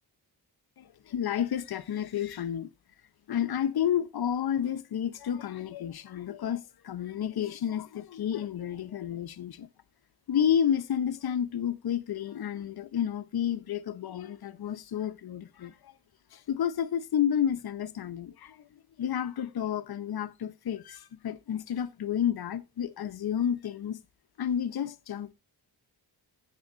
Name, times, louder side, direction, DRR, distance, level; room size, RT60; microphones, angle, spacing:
voice 1, 0.8-2.7 3.3-9.7 10.3-15.9 16.3-18.6 19.0-24.0 24.4-25.3, left 9 dB, 65° left, 0.9 m, -31 dB
17.0 x 7.2 x 2.6 m
wide cardioid pair, 155°, 41 cm